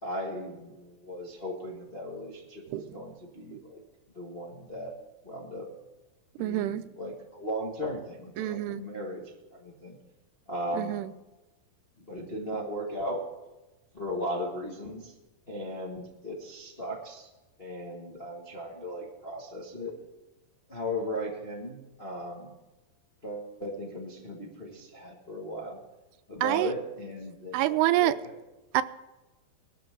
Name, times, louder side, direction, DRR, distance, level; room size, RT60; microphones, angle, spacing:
voice 1, 0.0-3.8 4.1-4.9 5.2-5.7 6.4-9.2 9.5-10.0 10.5-11.0 12.1-13.2 13.9-15.1 15.5-17.3 17.6-19.9 20.7-22.5 23.2-25.8 26.3-28.1, equal, 35° left, -3 dB, 0.9 m, -37 dB
voice 2, 2.7-3.0 3.5-3.6 6.4-6.8 8.4-8.8 10.7-11.1 26.4-26.7 27.5-28.2 28.7-28.8, right 14 dB, 85° right, 13 dB, 2.7 m, -27 dB
21.5 x 12.5 x 3.8 m, 1.1 s
omnidirectional pair, 4.6 m